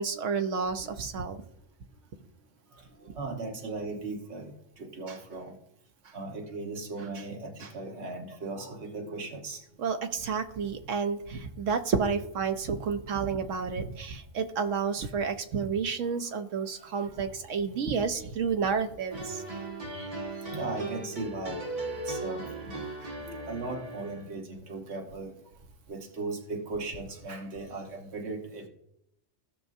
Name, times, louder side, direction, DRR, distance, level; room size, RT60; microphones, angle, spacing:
voice 1, 0.0-1.4 9.8-19.4, right 5 dB, 85° right, 7 dB, 1.2 m, -30 dB
voice 2, 3.1-4.5 4.8-5.4 6.1-9.6 18.1-18.2 19.9-20.1 20.5-21.6 22.1-25.3 25.9-28.7, right 3 dB, 65° right, 1 dB, 1.5 m, -37 dB
sound 1, 19.1-24.3, right 2 dB, 30° right, 1.7 m, -37 dB
17.0 x 6.0 x 2.7 m, 0.80 s
omnidirectional pair, 1.3 m